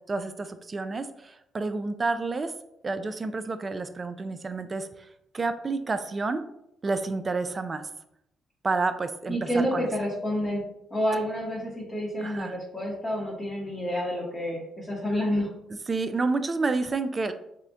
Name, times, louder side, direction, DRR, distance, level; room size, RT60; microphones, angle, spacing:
voice 1, 0.1-2.5 2.8-4.9 5.3-6.4 6.8-7.8 8.6-9.9 12.2-12.6 15.9-17.3, right 3 dB, 30° right, 10 dB, 0.3 m, -29 dB
voice 2, 9.3-10.6 10.9-15.5, equal, 25° left, -5 dB, 0.9 m, -29 dB
3.7 x 2.1 x 3.5 m, 0.80 s
cardioid pair, 90°, 0 cm